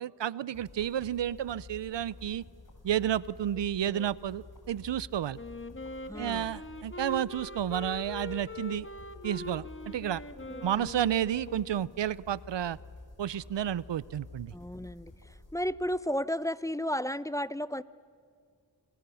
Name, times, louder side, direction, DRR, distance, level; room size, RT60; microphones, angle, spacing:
voice 1, 0.0-2.4 2.8-5.4 6.2-8.9 9.2-10.2 10.6-12.8 13.2-14.5, right 10 dB, 80° right, 21 dB, 0.6 m, -31 dB
sound 1, 0.5-16.0, left 2 dB, 45° left, 5.4 m, -51 dB
Wind instrument woodwind instrument, 5.3-12.0, left 2 dB, 30° left, 1.9 m, -43 dB
voice 2, 6.0-6.6 10.5-10.9 14.5-17.8, equal, 10° left, 17 dB, 0.7 m, -34 dB
29.5 x 27.0 x 7.0 m, 2.3 s
cardioid pair, 50°, 43 cm